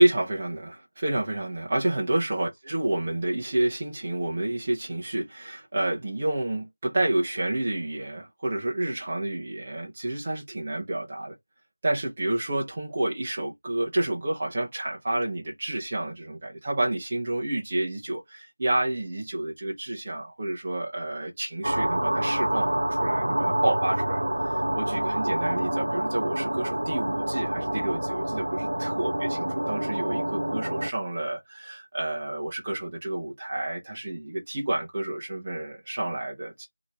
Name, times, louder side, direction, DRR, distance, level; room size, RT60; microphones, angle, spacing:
voice 1, 0.0-11.4 11.8-36.7, right 1 dB, 20° right, 0.9 m, -29 dB
sound 1, 21.6-30.9, right 1 dB, 70° right, 0.6 m, -27 dB
4.4 x 2.9 x 3.5 m
figure-of-eight pair, 175°, 0 cm